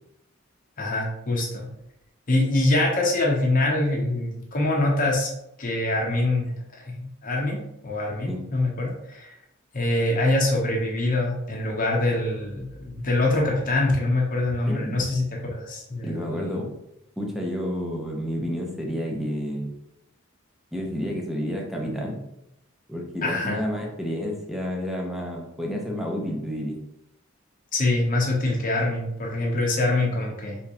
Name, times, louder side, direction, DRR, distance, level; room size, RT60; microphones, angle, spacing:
voice 1, 0.8-1.7 2.3-5.3 5.6-9.3 9.7-16.5 23.2-23.6 27.7-30.6, left 2 dB, 40° left, -1 dB, 0.9 m, -24 dB
voice 2, 14.7-15.0 16.0-16.7 17.2-19.8 20.7-22.2 22.9-26.8, equal, ahead, -1 dB, 0.8 m, -30 dB
4.3 x 3.7 x 2.9 m, 0.81 s
head